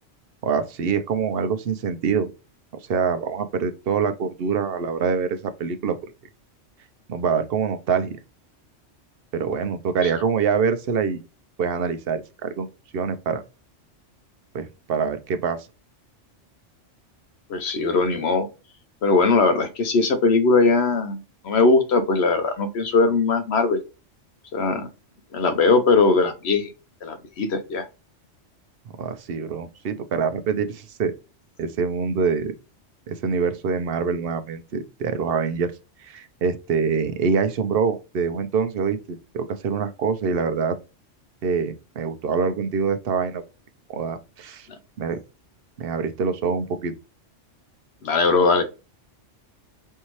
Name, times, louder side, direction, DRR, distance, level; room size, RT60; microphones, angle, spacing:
voice 1, 0.4-2.3 2.9-6.0 7.1-8.2 9.3-11.2 11.6-12.7 12.9-13.4 14.5-15.7 29.0-31.1 31.6-32.5 33.1-35.7 36.0-40.8 41.4-43.4 43.9-44.7 45.0-45.2 45.8-46.9, right 5 dB, 60° right, 0.7 m, -25 dB
voice 2, 17.5-18.5 19.0-23.8 24.5-24.9 25.3-26.7 27.0-27.9 48.0-48.6, left 3 dB, 65° left, 0.9 m, -20 dB
5.4 x 2.7 x 3.0 m
omnidirectional pair, 1.2 m